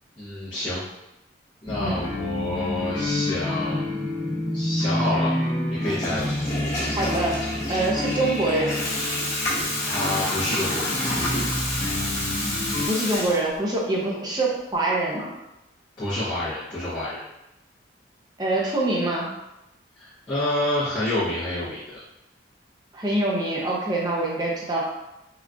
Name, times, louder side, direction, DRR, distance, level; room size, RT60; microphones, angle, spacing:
voice 1, 0.2-0.8 1.6-3.8 4.5-5.3 5.7-6.3 9.6-11.0 16.0-17.2 20.0-21.8, left 1 dB, 25° left, -14 dB, 0.7 m, -28 dB
sound 1, 1.7-12.9, left 1 dB, 90° left, 1.0 m, -29 dB
Water tap faucet / Toilet flush, 5.7-13.8, left 1 dB, 45° left, 1.3 m, -29 dB
voice 2, 7.0-7.4 7.7-8.9 12.9-15.3 18.4-19.3 22.9-24.8, right 2 dB, 20° right, -3 dB, 0.5 m, -25 dB
3.8 x 2.3 x 2.3 m, 0.92 s
head